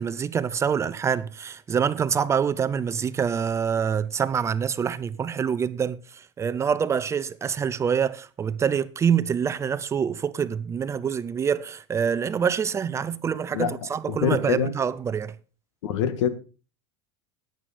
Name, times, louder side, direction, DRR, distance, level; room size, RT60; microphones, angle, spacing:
voice 1, 0.0-15.4, right 7 dB, 20° right, 0.5 m, -26 dB
voice 2, 14.1-14.7 15.8-16.3, left 8 dB, 85° left, 1.7 m, -24 dB
12.5 x 9.5 x 4.2 m
supercardioid pair, 140°, 15 cm